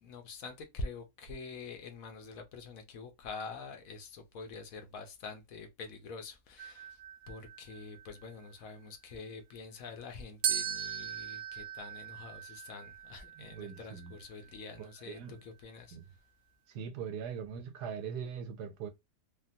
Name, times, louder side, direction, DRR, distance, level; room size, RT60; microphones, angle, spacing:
voice 1, 0.0-7.0 7.3-16.0, left 3 dB, 65° left, 1.0 m, -46 dB
sound 1, 6.6-8.5 10.4-14.5, right 10 dB, 70° right, 0.5 m, -39 dB
voice 2, 13.4-14.1 14.8-15.4 15.9-16.1 16.7-18.9, right 7 dB, 85° right, 1.2 m, -41 dB
3.5 x 2.2 x 2.7 m
omnidirectional pair, 1.7 m